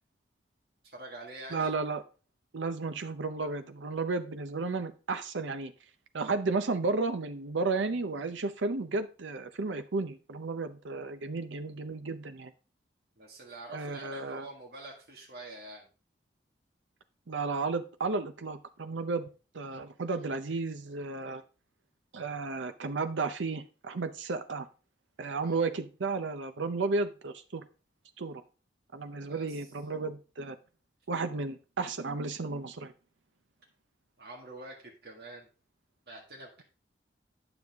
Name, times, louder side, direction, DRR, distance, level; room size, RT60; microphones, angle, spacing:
voice 1, 0.8-1.7 13.2-15.9 25.4-25.7 29.2-29.7 34.2-35.5 36.1-36.6, right 2 dB, 60° right, 1.9 m, -46 dB
voice 2, 1.5-2.0 2.5-5.7 6.1-12.5 13.7-14.5 17.3-19.3 19.5-21.4 22.1-24.7 25.2-27.6 28.2-28.4 28.9-30.6 31.1-32.9, right 3 dB, 85° right, 0.7 m, -33 dB
9.5 x 7.0 x 3.5 m
head